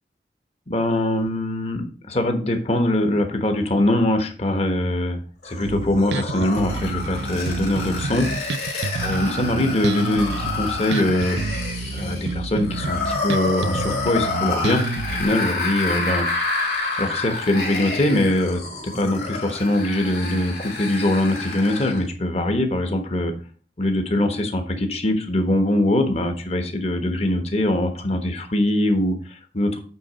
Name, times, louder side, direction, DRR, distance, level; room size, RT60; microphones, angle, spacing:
voice 1, 0.7-8.3 9.0-11.4 11.9-14.8 15.1-16.3 17.0-18.6 18.9-23.3 23.8-29.8, left 1 dB, 35° left, 5 dB, 1.1 m, -22 dB
sound 1, 5.4-22.1, left 3 dB, 65° left, 2.8 m, -29 dB
Bass guitar, 5.6-15.2, right 3 dB, 75° right, 0.5 m, -29 dB
8.6 x 3.8 x 5.1 m, 0.40 s
head